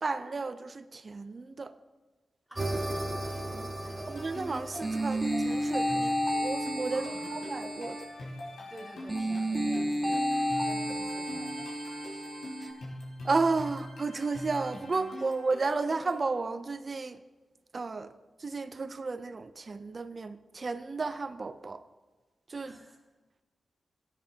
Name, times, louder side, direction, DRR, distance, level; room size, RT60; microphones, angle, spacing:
voice 1, 0.0-1.7 4.1-6.2 6.4-8.0 13.2-17.2 17.7-18.1 18.4-21.8 22.5-22.7, right 3 dB, 40° right, 0.5 m, -32 dB
voice 2, 2.5-4.1 6.9-7.4 8.7-10.3 10.6-11.7 15.1-15.3 22.7-23.0, right 1 dB, ahead, 2.4 m, -49 dB
sound 1, 2.6-8.2 9.1-12.7, equal, 15° right, 1.6 m, -32 dB
sound 2, 4.0-16.3, left 1 dB, 85° left, 4.6 m, -44 dB
19.0 x 9.6 x 2.8 m
wide cardioid pair, 125°, 0 cm